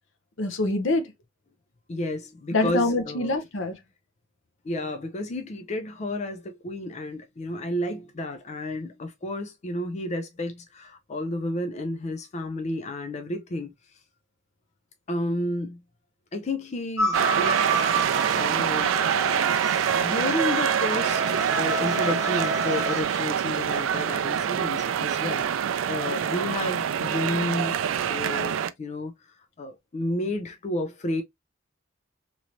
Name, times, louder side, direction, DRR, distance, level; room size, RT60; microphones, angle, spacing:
voice 1, 0.4-1.1 2.5-3.8, left 2 dB, 70° left, 0.7 m, -25 dB
voice 2, 1.9-3.3 4.6-13.7 15.1-15.8 16.3-19.0 19.9-27.8 28.1-29.1 29.6-31.2, left 1 dB, 35° left, 0.4 m, -31 dB
sound 1, 17.0-23.0, right 1 dB, 15° right, 0.6 m, -30 dB
sound 2, 17.1-28.7, right 8 dB, 80° right, 0.3 m, -25 dB
3.1 x 3.0 x 2.5 m
head